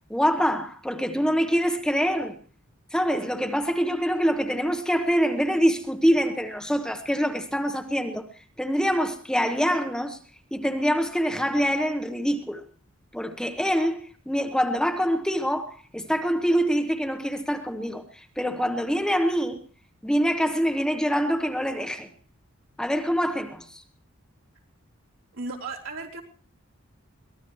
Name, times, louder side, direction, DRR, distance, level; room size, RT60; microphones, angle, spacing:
voice 1, 0.1-2.4 2.9-10.2 10.5-12.6 13.1-19.6 20.0-22.1 22.8-23.8, equal, 5° left, 1.1 m, -25 dB
voice 2, 25.3-26.2, right 3 dB, 70° right, 3.8 m, -35 dB
23.5 x 19.0 x 3.1 m
head